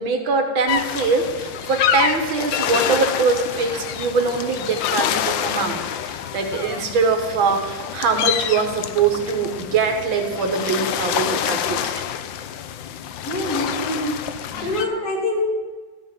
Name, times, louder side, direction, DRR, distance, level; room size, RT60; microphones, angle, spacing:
voice 1, 0.0-11.9 14.5-14.7, right 4 dB, 90° right, 5 dB, 2.3 m, -22 dB
sound 1, 0.7-14.9, left 9 dB, 80° left, 1.4 m, -27 dB
voice 2, 13.2-15.6, left 1 dB, 50° left, -2 dB, 3.3 m, -25 dB
15.0 x 5.4 x 9.2 m, 1.4 s
omnidirectional pair, 2.1 m